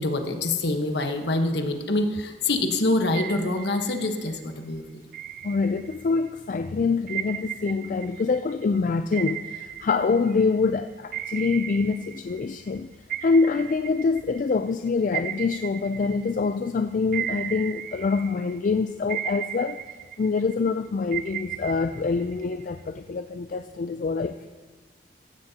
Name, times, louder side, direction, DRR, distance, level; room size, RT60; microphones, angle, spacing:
voice 1, 0.0-4.8, left 2 dB, 65° left, 5 dB, 1.1 m, -25 dB
sound 1, 3.1-4.4 5.1-6.3 7.1-10.7 11.1-12.8 13.1-16.7 17.1-18.7 19.1-20.7 21.1-22.8, right 11 dB, 50° right, 0.5 m, -36 dB
voice 2, 5.4-12.9 13.2-19.8 20.2-24.5, left 4 dB, 45° left, 8 dB, 0.3 m, -25 dB
15.5 x 15.0 x 2.8 m, 1.4 s
head